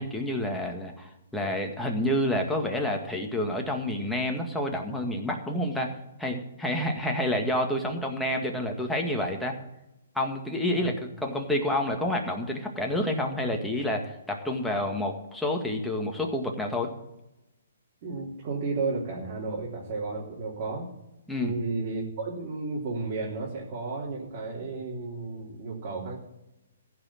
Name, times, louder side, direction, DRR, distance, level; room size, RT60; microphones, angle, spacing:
voice 1, 0.0-5.9 6.2-9.5 10.2-16.9 21.3-21.5, left 1 dB, 5° left, 1 dB, 1.9 m, -29 dB
voice 2, 18.0-20.9 21.4-26.2, right 3 dB, 40° right, -5 dB, 3.4 m, -33 dB
15.0 x 6.0 x 8.7 m, 0.91 s
hypercardioid pair, 150°, 0 cm